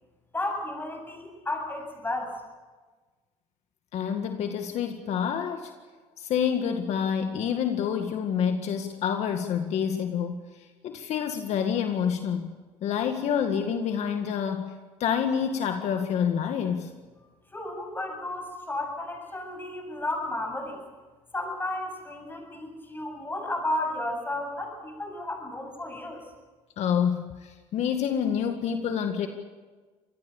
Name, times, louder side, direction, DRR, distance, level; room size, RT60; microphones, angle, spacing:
voice 1, 0.3-2.3 17.5-20.8 21.3-26.2, left 1 dB, 15° left, 3 dB, 7.8 m, -33 dB
voice 2, 3.9-5.7 6.2-10.5 10.8-12.5 12.8-16.9 26.8-29.3, left 8 dB, 70° left, 5 dB, 1.9 m, -28 dB
26.0 x 20.0 x 7.2 m, 1.3 s
cardioid pair, 100°, 12 cm